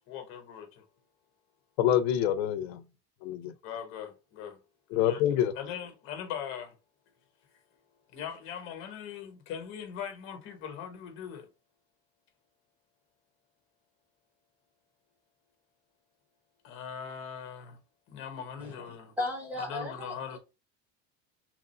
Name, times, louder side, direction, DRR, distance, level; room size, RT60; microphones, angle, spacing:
voice 1, 0.1-0.8 3.6-4.6 4.9-6.8 8.1-11.5 16.6-17.8 18.1-19.2 19.6-20.4, left 8 dB, 40° left, 1.0 m, -40 dB
voice 2, 1.8-2.8 3.2-3.5 4.9-5.5, left 11 dB, 85° left, 0.6 m, -26 dB
voice 3, 19.2-20.4, left 2 dB, 5° right, 0.3 m, -35 dB
3.0 x 2.5 x 4.1 m
cardioid pair, 175°, 31 cm